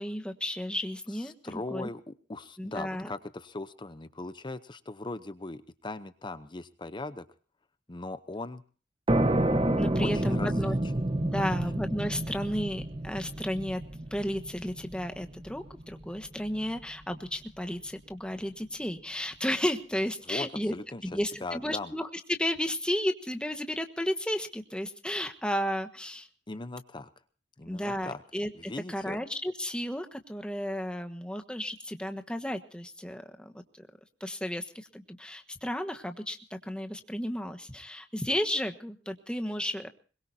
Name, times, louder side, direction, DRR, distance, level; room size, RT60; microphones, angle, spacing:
voice 1, 0.0-1.3 1.7-1.9 2.6-3.1 9.8-10.8 11.2-13.8 14.1-20.7 21.0-26.3 27.7-33.9 34.2-39.9, equal, 5° left, 6 dB, 1.4 m, -33 dB
voice 2, 1.1-7.3 7.9-8.6 10.0-10.8 11.4-11.6 20.3-21.1 21.4-21.9 26.5-27.1 27.6-28.2 28.5-29.2, left 2 dB, 25° left, 12 dB, 0.8 m, -39 dB
sound 1, 9.1-16.5, right 1 dB, 30° right, 1.1 m, -29 dB
23.5 x 22.0 x 2.8 m, 0.39 s
head